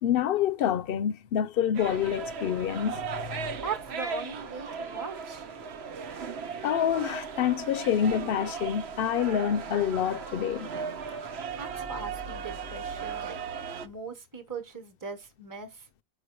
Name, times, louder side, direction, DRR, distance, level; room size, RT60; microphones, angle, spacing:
voice 1, 0.0-3.0 3.3-3.5 6.6-10.7, left 9 dB, 65° left, 0.7 m, -27 dB
sound 1, 1.7-13.9, right 5 dB, 85° right, 1.1 m, -37 dB
voice 2, 3.6-5.5 11.1-13.4 13.8-15.9, right 5 dB, 20° right, 1.0 m, -39 dB
5.0 x 4.4 x 4.5 m
omnidirectional pair, 1.1 m